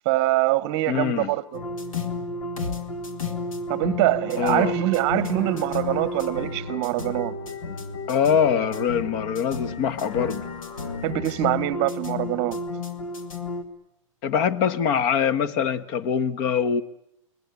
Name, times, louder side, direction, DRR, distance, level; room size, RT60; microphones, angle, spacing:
voice 1, 0.0-1.6 3.7-7.4 11.0-12.6, right 17 dB, 35° right, 0.9 m, -24 dB
voice 2, 0.9-1.3 4.4-4.7 8.1-10.5 14.2-16.8, left 7 dB, 40° left, 1.4 m, -23 dB
sound 1, 1.5-13.6, left 3 dB, 90° left, 2.8 m, -32 dB
sound 2, 1.6-12.1, right 11 dB, 10° left, 2.0 m, -51 dB
29.5 x 19.0 x 8.4 m
hypercardioid pair, 140°, 17 cm